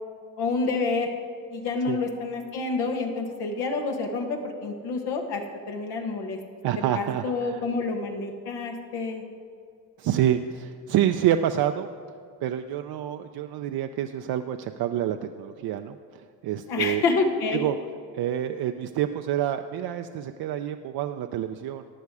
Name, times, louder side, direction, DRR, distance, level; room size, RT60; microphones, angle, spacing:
voice 1, 0.4-1.1 1.5-6.4 6.9-9.2 16.7-17.7, left 3 dB, 85° left, 2 dB, 1.5 m, -28 dB
voice 2, 6.6-7.6 10.0-11.9 12.4-17.0 17.5-17.8 18.1-21.9, right 11 dB, 65° right, 7 dB, 0.6 m, -27 dB
15.0 x 9.7 x 4.8 m, 2.3 s
supercardioid pair, 70°, 39 cm